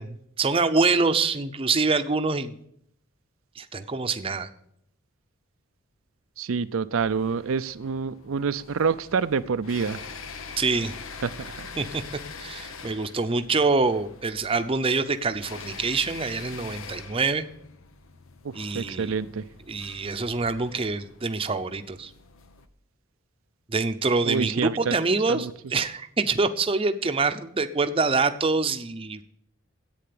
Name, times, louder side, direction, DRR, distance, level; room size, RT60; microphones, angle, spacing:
voice 1, 0.0-2.6 3.6-4.5 10.6-10.9 11.8-12.0 12.4-17.5 18.5-19.2 19.7-22.1 23.7-29.2, right 4 dB, 25° right, 9 dB, 0.7 m, -25 dB
voice 2, 6.4-10.0 11.2-11.7 18.4-19.4 24.3-25.0 25.3-25.5, right 5 dB, 80° right, 11 dB, 0.5 m, -27 dB
sound 1, 7.0-22.7, left 5 dB, 80° left, 0.9 m, -44 dB
10.0 x 8.6 x 8.5 m, 0.72 s
head